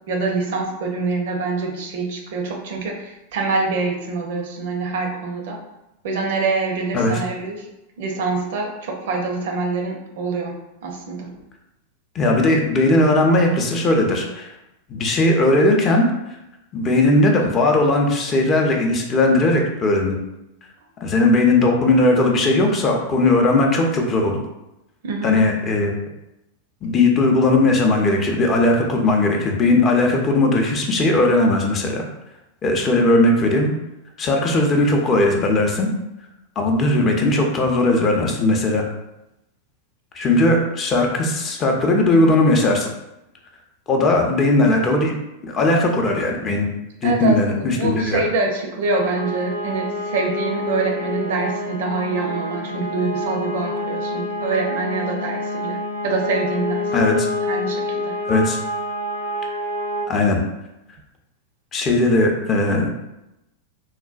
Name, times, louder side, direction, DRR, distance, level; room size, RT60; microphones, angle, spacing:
voice 1, 0.1-5.6 6.0-7.7 8.0-10.5 10.8-11.4 25.0-25.4 47.0-56.9 57.4-58.2, right 3 dB, 55° right, 2 dB, 0.5 m, -25 dB
voice 2, 12.1-14.5 14.9-16.1 16.7-20.2 21.0-24.4 25.2-25.9 26.8-32.1 32.6-33.7 34.2-35.9 36.6-38.8 40.1-42.9 43.9-45.1 45.4-46.7 47.0-48.2 56.9-57.3 58.3-58.6 60.1-60.4 61.7-62.9, left 2 dB, 30° left, 1 dB, 0.5 m, -18 dB
sound 1, 48.9-60.1, left 2 dB, 85° left, 0.3 m, -27 dB
3.8 x 2.1 x 2.4 m, 0.91 s
figure-of-eight pair, 90°, 0 cm